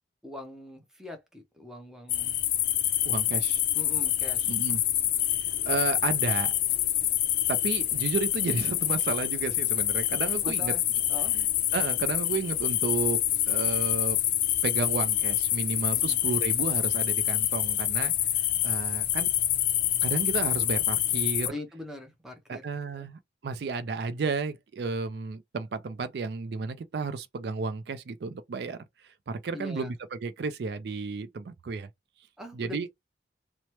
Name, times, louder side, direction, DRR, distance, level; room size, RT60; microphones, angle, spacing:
voice 1, 0.2-2.4 3.7-4.6 10.4-10.8 11.1-11.4 15.9-16.2 21.4-22.6 22.9-23.1 29.5-29.9 32.4-32.9, left 1 dB, 5° right, 0.6 m, -42 dB
sound 1, 2.1-21.5, left 12 dB, 50° left, 0.4 m, -26 dB
voice 2, 3.1-3.6 4.5-4.8 5.7-6.5 7.5-10.7 11.3-11.5 11.7-13.2 13.5-14.2 14.6-18.1 18.6-19.3 20.0-21.5 22.5-31.9 32.5-32.9, right 4 dB, 65° right, 0.4 m, -32 dB
3.0 x 2.0 x 2.9 m
head